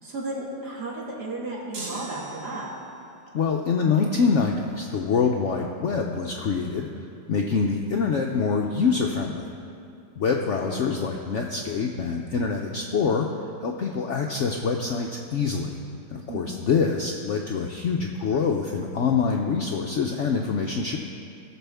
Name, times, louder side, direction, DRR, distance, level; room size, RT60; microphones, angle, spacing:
voice 1, 0.0-2.7 10.3-10.8 16.3-16.5, right 2 dB, 60° right, -5 dB, 2.6 m, -34 dB
sound 1, 1.7-3.0, right 3 dB, 85° right, 2.2 m, -39 dB
voice 2, 3.3-6.9 7.3-9.5 10.2-13.3 13.6-15.8 16.1-21.0, left 5 dB, 75° left, 2 dB, 0.6 m, -25 dB
18.5 x 6.9 x 3.4 m, 2.6 s
omnidirectional pair, 1.9 m